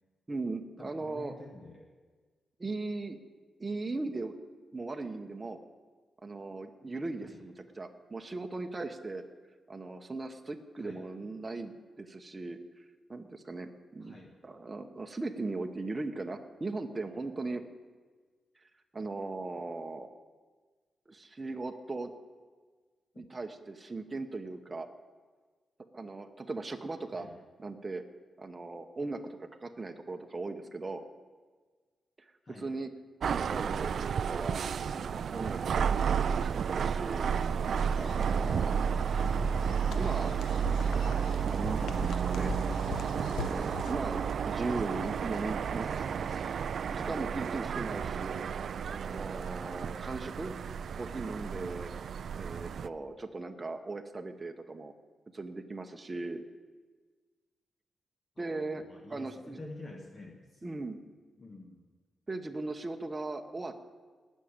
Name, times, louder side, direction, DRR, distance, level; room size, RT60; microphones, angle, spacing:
voice 1, 0.3-1.3 2.6-3.2 3.6-4.3 4.7-5.6 6.2-9.2 9.7-12.8 13.1-14.1 14.4-17.6 18.9-20.1 21.1-22.1 23.2-24.9 25.9-27.3 27.6-28.0 28.4-31.0 32.6-32.9 33.2-34.6 34.9-36.0 36.4-37.3 38.0-38.7 39.9-40.3 41.4-42.5 43.1-45.9 46.9-50.6 50.9-51.9 52.3-54.9 55.3-56.4 58.4-59.6 60.6-61.0 62.3-63.8, right 3 dB, 20° right, 4 dB, 0.9 m, -38 dB
voice 2, 0.8-1.9 7.2-7.4 10.8-11.0 14.0-14.3 23.1-23.2 27.1-27.4 32.4-32.7 39.1-39.4 45.3-46.7 47.0-47.2 58.4-60.8 61.4-61.8, left 2 dB, 30° left, 2 dB, 1.3 m, -49 dB
sound 1, 33.2-52.9, right 7 dB, 60° right, 0.3 m, -32 dB
sound 2, 37.2-43.9, left 6 dB, 90° left, 1.0 m, -42 dB
18.5 x 6.4 x 8.9 m, 1.4 s
wide cardioid pair, 135°, 0 cm